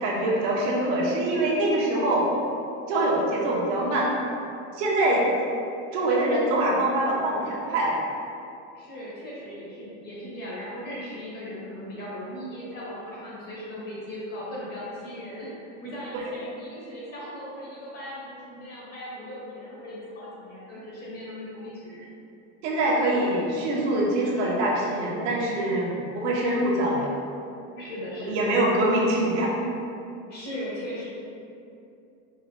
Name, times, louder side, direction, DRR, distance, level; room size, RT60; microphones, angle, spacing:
voice 1, 0.0-2.3 2.9-4.1 4.7-5.2 5.9-7.9 22.6-27.1 28.3-29.5, right 1 dB, 70° right, -4 dB, 1.0 m, -24 dB
voice 2, 8.7-15.5 15.8-22.1 27.8-28.5 30.3-31.1, equal, 25° left, -7 dB, 0.8 m, -38 dB
4.6 x 2.2 x 3.2 m, 2.7 s
supercardioid pair, 160°, 38 cm